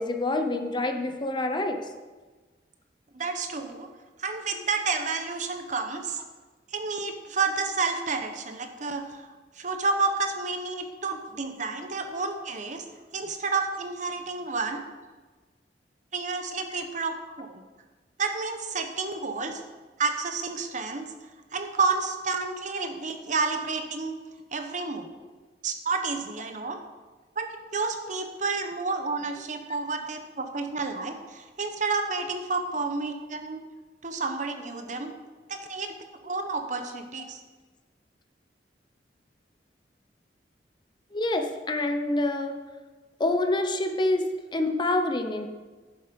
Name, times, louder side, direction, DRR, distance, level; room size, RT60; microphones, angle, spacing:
voice 1, 0.0-1.9 16.7-16.8 41.1-42.6 43.2-44.2 44.5-45.5, left 2 dB, 25° left, 5 dB, 0.7 m, -27 dB
voice 2, 3.1-3.9 4.2-6.2 6.7-9.3 9.6-12.8 13.1-14.8 16.1-17.6 18.2-19.6 20.0-21.1 21.5-24.2 24.5-25.1 25.6-26.8 27.4-27.5 27.7-33.6 34.0-35.1 35.5-35.9 36.2-37.4, right 4 dB, 45° right, 6 dB, 1.0 m, -30 dB
10.5 x 7.3 x 5.3 m, 1.3 s
head